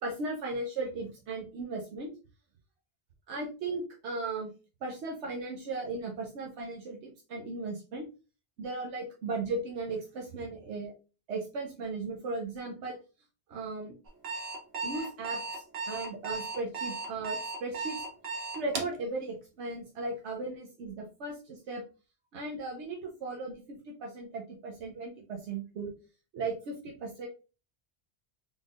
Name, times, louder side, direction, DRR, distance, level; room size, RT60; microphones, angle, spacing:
voice 1, 0.0-2.1 3.3-4.5 4.8-8.1 8.6-10.9 11.3-13.0 13.5-14.0 14.8-18.0 18.5-21.8 22.3-25.9 26.3-27.3, right 3 dB, 90° right, 0 dB, 1.0 m, -37 dB
Alarm, 14.1-19.0, right 3 dB, 65° right, 1.1 m, -35 dB
3.9 x 3.4 x 2.4 m, 0.33 s
omnidirectional pair, 1.1 m